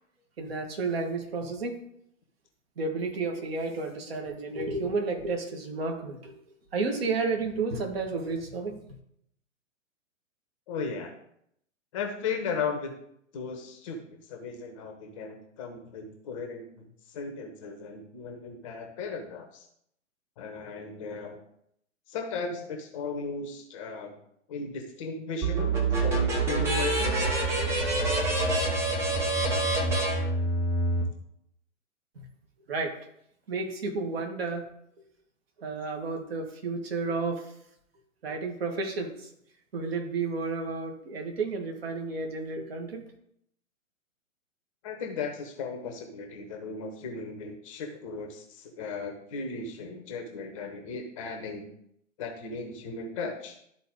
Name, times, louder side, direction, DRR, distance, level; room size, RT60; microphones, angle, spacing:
voice 1, 0.4-1.8 2.8-6.3 6.7-8.8 32.7-33.0 33.5-34.7 35.6-37.5 38.2-39.3 39.7-43.0, right 3 dB, 45° right, 3 dB, 1.7 m, -31 dB
voice 2, 10.7-11.1 11.9-12.9 13.3-14.0 14.3-16.7 17.1-19.7 20.4-21.4 22.1-24.2 24.5-27.2 44.8-51.7 52.2-53.6, left 4 dB, 25° left, 4 dB, 0.8 m, -36 dB
sound 1, 25.4-31.0, right 2 dB, 5° right, 0.6 m, -26 dB
12.0 x 4.1 x 3.7 m, 0.73 s
figure-of-eight pair, 120°, 40 cm